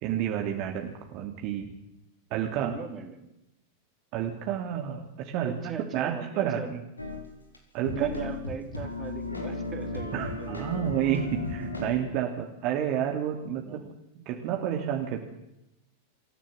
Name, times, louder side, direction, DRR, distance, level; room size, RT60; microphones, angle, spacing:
voice 1, 0.0-1.7 2.3-2.7 4.1-6.6 7.7-8.1 10.1-13.8 14.1-15.2, right 10 dB, 40° right, 3 dB, 2.7 m, -30 dB
voice 2, 2.6-3.3 5.4-6.7 7.9-10.9 12.3-12.4 13.5-14.0, right 6 dB, 25° right, 6 dB, 3.5 m, -39 dB
sound 1, 7.0-7.2 7.5-7.6 7.8-12.0, left 3 dB, 80° left, 4.2 m, -35 dB
26.5 x 15.0 x 7.7 m, 0.87 s
figure-of-eight pair, 90°, 0 cm